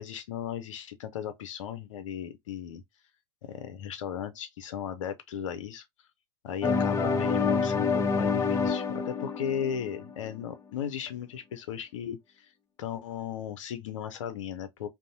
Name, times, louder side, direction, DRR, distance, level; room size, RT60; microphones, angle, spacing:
voice 1, 0.0-2.8 3.4-5.8 6.4-12.5 12.8-14.9, left 9 dB, 80° left, 0.5 m, -36 dB
sound 1, 6.6-10.4, left 5 dB, 20° left, 0.6 m, -27 dB
2.6 x 2.0 x 2.7 m
hypercardioid pair, 85°, 16 cm